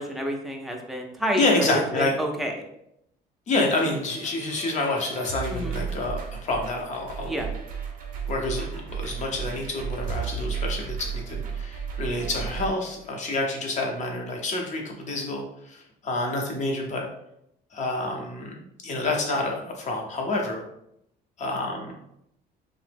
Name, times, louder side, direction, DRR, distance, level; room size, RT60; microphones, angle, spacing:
voice 1, 0.0-2.5 5.5-5.8 7.3-7.5, equal, ahead, 0 dB, 0.5 m, -29 dB
voice 2, 1.4-2.1 3.5-7.4 8.3-17.0 17.7-20.6 21.4-21.9, left 2 dB, 45° left, 1 dB, 0.7 m, -28 dB
sound 1, 3.7-12.7, right 6 dB, 55° right, 0.5 m, -34 dB
2.8 x 2.0 x 3.3 m, 0.77 s
cardioid pair, 110°, 17 cm